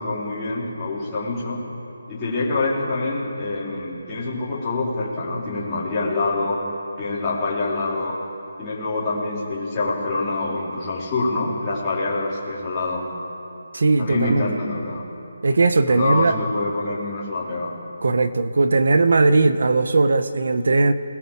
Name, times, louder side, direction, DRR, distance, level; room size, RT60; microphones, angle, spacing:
voice 1, 0.0-1.6 2.1-6.6 7.0-8.2 8.6-13.1 14.0-15.0 15.9-17.7, left 3 dB, 10° left, -10 dB, 4.5 m, -26 dB
voice 2, 13.7-14.5 15.4-16.4 18.0-20.9, right 3 dB, 55° right, 10 dB, 1.5 m, -18 dB
28.0 x 20.5 x 7.5 m, 2.8 s
hypercardioid pair, 175°, 0 cm